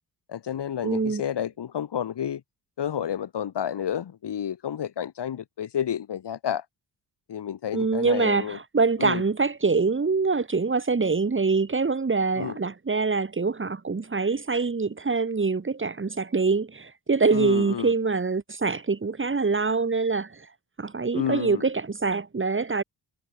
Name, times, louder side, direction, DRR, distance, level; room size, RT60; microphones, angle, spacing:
voice 1, 0.3-2.4 2.8-6.6 7.3-8.6 9.0-9.2 12.4-12.6 17.3-17.9 21.1-21.6, left 9 dB, 70° left, 6.1 m, -30 dB
voice 2, 0.8-1.2 7.7-20.5 20.8-22.8, right 4 dB, 30° right, 3.9 m, -24 dB
wide cardioid pair, 130°, 42 cm